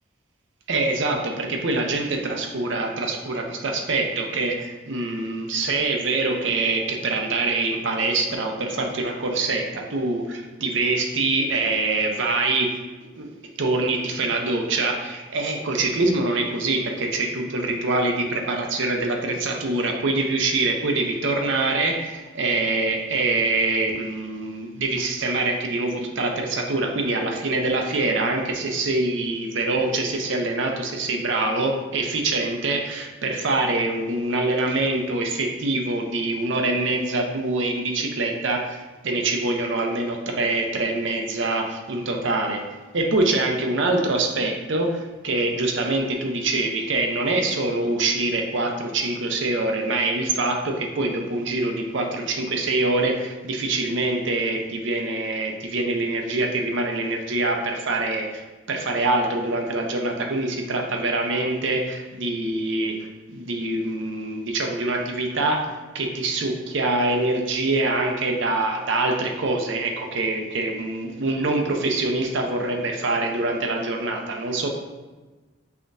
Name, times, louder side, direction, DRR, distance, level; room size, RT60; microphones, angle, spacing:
voice 1, 0.7-12.8 13.1-13.3 13.6-42.6 42.9-63.0 63.3-74.7, right 2 dB, 60° right, 2 dB, 0.6 m, -24 dB
5.7 x 3.5 x 2.6 m, 1.2 s
head